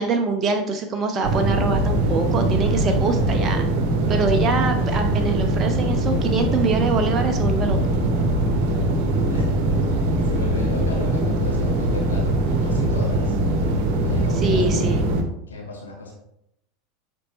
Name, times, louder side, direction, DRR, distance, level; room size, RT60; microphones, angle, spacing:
voice 1, 0.0-3.7 4.1-7.8 14.3-15.0, right 3 dB, 30° right, 4 dB, 0.8 m, -24 dB
sound 1, 1.2-15.2, right 1 dB, 55° right, 1.1 m, -21 dB
voice 2, 10.2-13.4 14.0-15.1 15.5-16.1, left 2 dB, 80° left, -1 dB, 1.6 m, -35 dB
8.2 x 5.4 x 3.1 m, 0.78 s
figure-of-eight pair, 80°, 0 cm